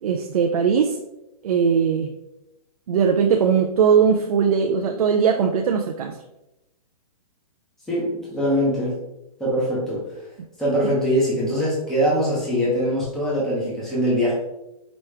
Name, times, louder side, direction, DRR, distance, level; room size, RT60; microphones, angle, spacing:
voice 1, 0.0-1.0 1.4-2.1 2.9-6.2, right 6 dB, 65° right, 3 dB, 0.5 m, -19 dB
voice 2, 7.9-9.0 9.4-10.0 10.6-14.3, equal, ahead, -8 dB, 0.9 m, -22 dB
5.0 x 3.0 x 3.3 m, 0.92 s
hypercardioid pair, 170°, 20 cm